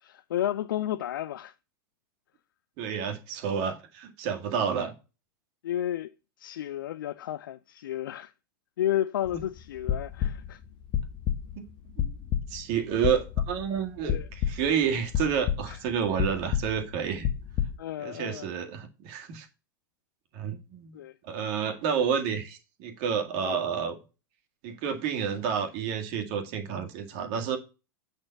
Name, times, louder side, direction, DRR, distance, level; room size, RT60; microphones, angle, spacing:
voice 1, 0.0-1.5 5.6-6.1 6.4-8.3 8.8-10.6 14.1-14.3 15.7-15.8 17.8-18.5 20.9-21.2 23.4-23.6, left 12 dB, 70° left, 0.4 m, -32 dB
voice 2, 2.8-4.9 11.6-11.7 12.0-12.2 12.5-17.3 18.0-19.5 20.3-21.0 21.2-24.0 24.6-27.6, right 7 dB, 50° right, 1.7 m, -30 dB
sound 1, 9.2-9.5 9.8-10.6 10.9-11.6 12.0-12.6 13.0-13.8 14.1-14.7 15.1-15.9 16.2-17.7, left 10 dB, 40° left, 1.0 m, -29 dB
8.0 x 4.4 x 5.5 m
figure-of-eight pair, 90°, 11 cm